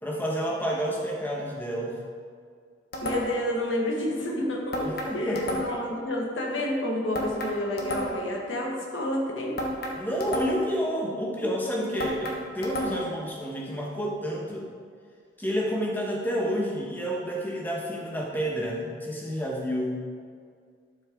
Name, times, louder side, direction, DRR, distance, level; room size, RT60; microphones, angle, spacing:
voice 1, 0.0-2.0 4.8-5.6 10.0-14.7 15.4-20.0, equal, 10° left, -2 dB, 1.4 m, -30 dB
sound 1, 2.9-3.5 4.7-5.9 7.1-8.4 9.6-10.8 12.0-13.2, equal, 55° left, 1.4 m, -32 dB
voice 2, 3.0-9.6, left 1 dB, 90° left, -2 dB, 1.8 m, -29 dB
11.5 x 6.5 x 3.8 m, 2.1 s
head